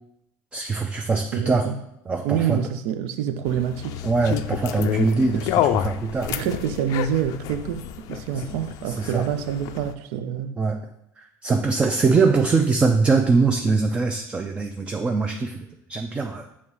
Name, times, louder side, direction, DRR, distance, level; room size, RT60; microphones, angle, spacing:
voice 1, 0.5-1.7 2.1-2.6 4.0-6.3 8.3-8.6 8.9-9.3 10.6-10.8 11.2-16.5, right 4 dB, 15° right, 0.4 m, -22 dB
voice 2, 1.1-1.8 2.2-4.0 5.3-5.5 6.3-10.6, right 9 dB, 75° right, 0.5 m, -27 dB
sound 1, 3.5-9.9, left 11 dB, 55° left, 0.4 m, -29 dB
7.1 x 2.9 x 4.7 m
cardioid pair, 150°, 7 cm